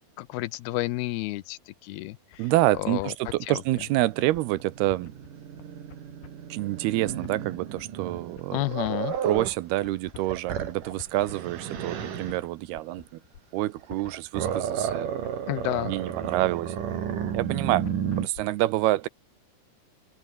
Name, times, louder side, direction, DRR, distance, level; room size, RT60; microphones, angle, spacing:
voice 1, 0.2-2.5 2.8-3.1 3.5-3.6 8.5-9.1 15.5-15.9, left 17 dB, 80° left, 2.6 m, -30 dB
sound 1, 2.3-18.4, left 9 dB, 60° left, 3.9 m, -49 dB
voice 2, 2.4-5.1 6.5-8.6 9.2-13.0 13.5-15.1 15.8-16.8 17.3-17.9 18.2-19.1, right 17 dB, 80° right, 2.7 m, -27 dB
Growling, 3.5-9.6 10.1-12.4 13.8-18.3, right 8 dB, 55° right, 3.8 m, -33 dB
open air
omnidirectional pair, 4.8 m